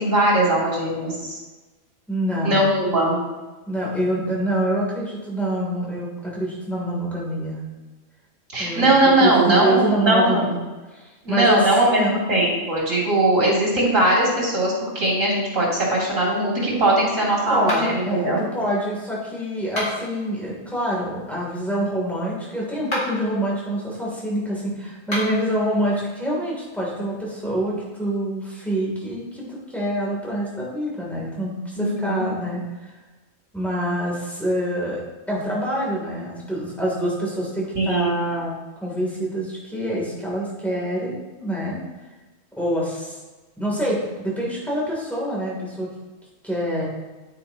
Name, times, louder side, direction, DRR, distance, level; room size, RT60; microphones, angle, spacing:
voice 1, 0.0-1.4 2.4-3.2 8.5-10.4 11.2-18.4 31.8-32.3 37.7-38.2, right 1 dB, 75° right, -5 dB, 3.2 m, -20 dB
voice 2, 2.1-2.7 3.7-7.6 8.6-10.6 10.9-12.2 17.5-32.9 33.5-35.0 35.3-41.8 42.6-43.2 43.6-45.9 46.4-46.9, right 1 dB, ahead, -5 dB, 3.0 m, -26 dB
sound 1, 17.6-18.1 19.6-20.2 22.8-23.3 25.0-25.5, equal, 70° left, 3.1 m, -29 dB
9.5 x 8.7 x 2.9 m, 1.2 s
omnidirectional pair, 1.3 m